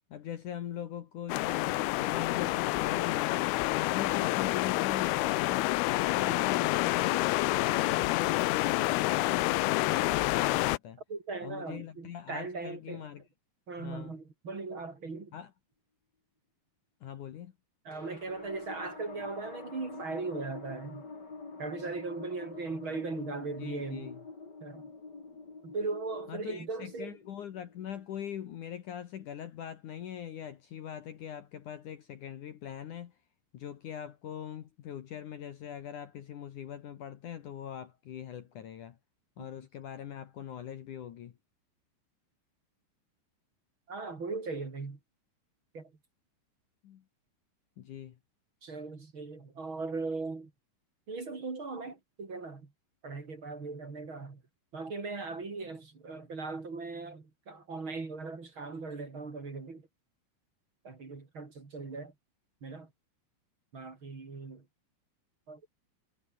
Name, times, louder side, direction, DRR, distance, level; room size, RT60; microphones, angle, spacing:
voice 1, 0.1-3.5 3.8-5.7 6.0-11.0 11.4-13.2 13.8-14.1 15.3-15.5 17.0-17.5 23.6-24.2 26.3-33.1 33.5-39.0 39.4-41.3 46.8-47.0 47.8-48.2, left 10 dB, 65° left, 2.1 m, -41 dB
sound 1, 1.3-10.8, left 20 dB, 85° left, 2.2 m, -28 dB
voice 2, 11.1-13.1 13.7-15.3 17.8-21.1 21.6-24.1 24.6-24.9 25.6-27.2 39.4-39.7 43.9-45.0 45.7-45.9 48.6-50.5 51.1-52.7 53.0-54.4 54.7-59.9 60.8-62.1 62.6-62.9 63.7-64.6 65.5-65.6, right 3 dB, 30° right, 3.6 m, -39 dB
sound 2, 17.9-28.6, left 4 dB, 25° left, 3.5 m, -47 dB
omnidirectional pair, 5.3 m